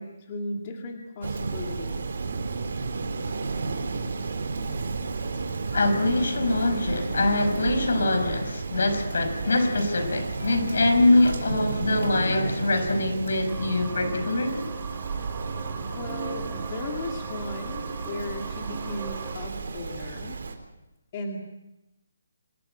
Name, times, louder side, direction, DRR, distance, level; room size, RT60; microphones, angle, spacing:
voice 1, 0.0-2.2 15.9-20.4 21.1-21.4, left 2 dB, 25° left, 2.4 m, -36 dB
Rain, 1.2-20.5, right 4 dB, 60° right, 4.0 m, -32 dB
voice 2, 5.7-14.6, left 2 dB, 70° left, 5.2 m, -23 dB
sound 1, 13.5-19.4, right 6 dB, 15° right, 3.2 m, -39 dB
27.0 x 14.0 x 10.0 m
hypercardioid pair, 175°, 0 cm